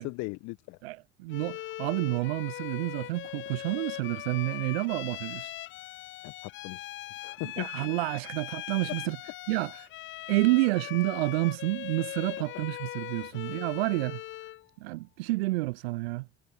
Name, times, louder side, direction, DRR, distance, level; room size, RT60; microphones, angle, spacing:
voice 1, 0.0-0.8 6.2-7.7, left 24 dB, 60° left, 1.6 m, -39 dB
voice 2, 0.8-5.5 7.4-9.2 9.5-9.9 10.3-14.2 14.8-16.3, right 21 dB, 70° right, 0.6 m, -29 dB
Bowed string instrument, 1.3-14.7, left 15 dB, 40° left, 0.5 m, -40 dB
figure-of-eight pair, 55°, 31 cm